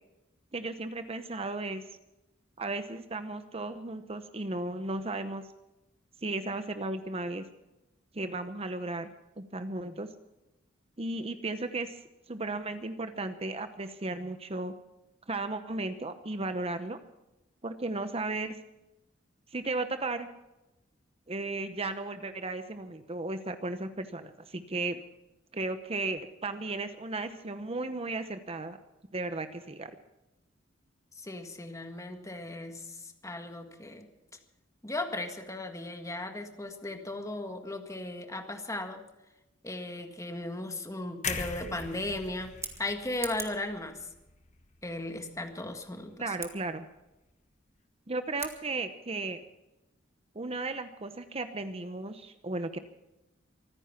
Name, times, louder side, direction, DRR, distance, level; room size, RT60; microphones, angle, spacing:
voice 1, 0.5-1.8 2.6-5.4 6.2-7.4 8.1-9.1 9.4-10.1 11.0-12.0 12.3-14.7 15.3-17.0 17.6-18.5 19.5-20.3 21.3-25.0 25.5-28.8 29.1-29.9 41.6-42.0 46.2-46.9 48.1-49.4 50.3-52.8, right 2 dB, 30° right, 9 dB, 0.9 m, -35 dB
voice 2, 31.2-34.0 34.8-39.0 39.6-42.5 42.8-44.0 44.8-46.1, left 2 dB, 15° left, 5 dB, 1.7 m, -36 dB
sound 1, 41.2-45.3 45.6-45.8, left 5 dB, 40° left, 1.2 m, -40 dB
Scissors, 42.4-43.7 46.3-46.5 48.3-48.6, right 4 dB, 15° right, 1.9 m, -41 dB
24.5 x 9.9 x 5.9 m, 0.96 s
head